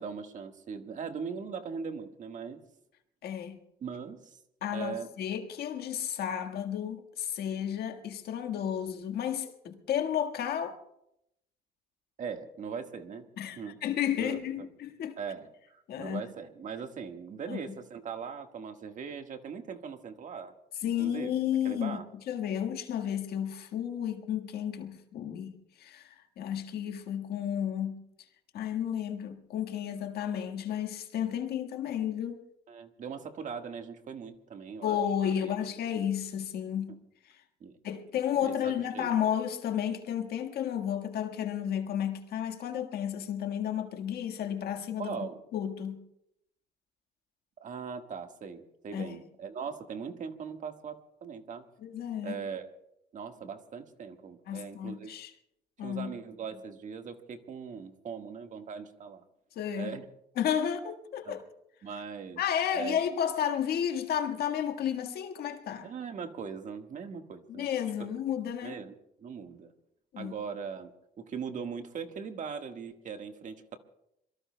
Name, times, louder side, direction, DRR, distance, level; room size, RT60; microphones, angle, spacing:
voice 1, 0.0-2.6 3.8-4.4 4.7-5.1 12.2-13.3 13.6-13.8 14.2-14.4 15.2-20.5 20.8-21.3 21.6-22.0 32.7-35.0 35.2-35.4 36.9-37.0 37.6-37.8 38.4-39.1 45.0-45.4 47.6-51.7 52.2-52.7 53.1-55.1 55.8-59.2 59.8-60.0 61.2-61.4 61.8-62.4 62.7-63.0 65.8-67.7 68.0-68.1 68.6-68.9 69.2-69.7 70.2-73.8, right 6 dB, 50° right, 1.6 m, -40 dB
voice 2, 3.2-3.6 4.6-10.8 13.4-15.2 15.9-16.2 17.5-17.6 20.8-22.0 22.3-28.0 28.5-32.4 34.8-37.0 37.8-45.2 45.5-46.0 48.9-49.2 51.8-52.4 54.5-55.3 55.8-56.1 59.5-59.9 60.4-61.4 62.4-65.9 67.5-68.8 70.1-70.3, left 9 dB, 65° left, 1.6 m, -32 dB
26.5 x 23.0 x 2.2 m
cardioid pair, 110°, 17 cm